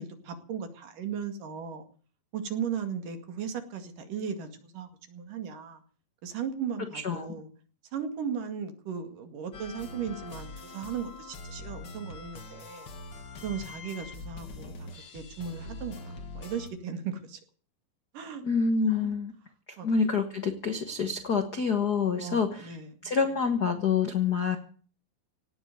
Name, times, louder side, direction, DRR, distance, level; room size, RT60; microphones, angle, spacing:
voice 1, 0.0-1.9 2.3-5.8 6.2-7.5 7.9-12.9 13.4-17.4 18.1-18.4 19.0-19.2 19.8-19.9 22.1-23.1, right 7 dB, 65° right, 7 dB, 3.6 m, -37 dB
voice 2, 6.9-7.3 18.4-19.3 19.8-22.8 23.0-24.6, left 5 dB, 65° left, 7 dB, 1.0 m, -27 dB
sound 1, 9.5-16.7, left 3 dB, 40° left, 1.8 m, -43 dB
18.0 x 7.9 x 9.3 m, 0.42 s
omnidirectional pair, 4.1 m